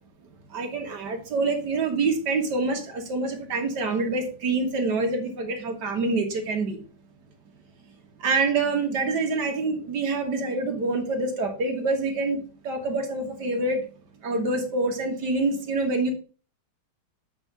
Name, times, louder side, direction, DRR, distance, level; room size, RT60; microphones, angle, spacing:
voice 1, 0.5-6.8 8.2-12.4 12.7-13.8 14.2-16.1, right 3 dB, 65° right, 2 dB, 2.2 m, -26 dB
8.1 x 4.6 x 5.3 m, 0.37 s
omnidirectional pair, 2.0 m